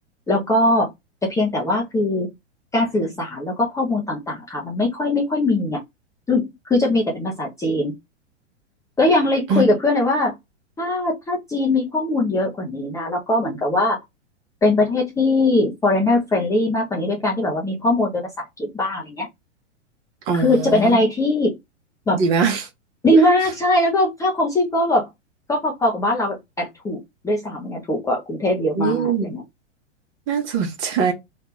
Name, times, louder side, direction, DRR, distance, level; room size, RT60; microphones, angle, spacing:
voice 1, 0.3-0.9 1.2-2.3 2.7-5.8 6.3-7.9 9.0-10.4 10.8-14.0 14.6-18.2 18.6-19.3 20.3-21.5 22.1-22.2 23.0-25.1 25.5-27.0 27.2-29.4, left 1 dB, 10° left, 0.7 m, -20 dB
voice 2, 20.3-21.0 22.1-22.7 28.7-29.4 30.3-31.1, right 5 dB, 35° right, 1.1 m, -21 dB
3.2 x 2.4 x 3.1 m
figure-of-eight pair, 105°, 36 cm